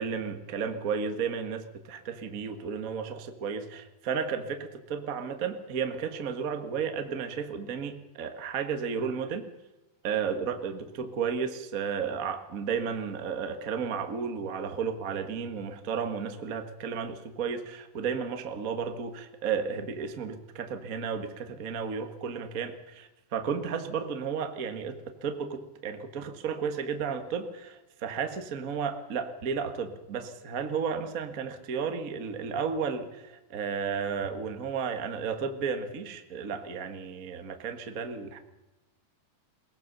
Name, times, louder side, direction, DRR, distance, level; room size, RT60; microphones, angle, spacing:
voice 1, 0.0-9.5 10.0-38.4, right 6 dB, 75° right, 6 dB, 0.7 m, -33 dB
22.0 x 19.0 x 6.8 m, 1.0 s
omnidirectional pair, 4.3 m